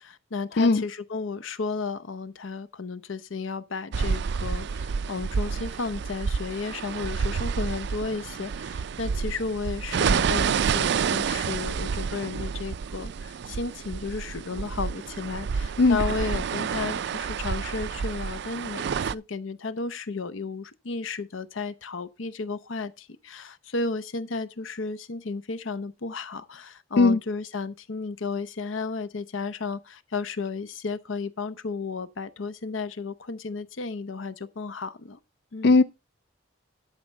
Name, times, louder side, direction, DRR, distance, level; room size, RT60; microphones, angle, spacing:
voice 1, 0.0-35.2 35.5-35.8, left 4 dB, 85° left, 0.8 m, -33 dB
voice 2, 0.6-0.8 15.8-16.0 27.0-27.2 35.6-35.8, left 3 dB, 60° left, 0.4 m, -17 dB
sound 1, 3.9-19.1, right 6 dB, 60° right, 0.4 m, -29 dB
11.5 x 4.4 x 5.2 m
head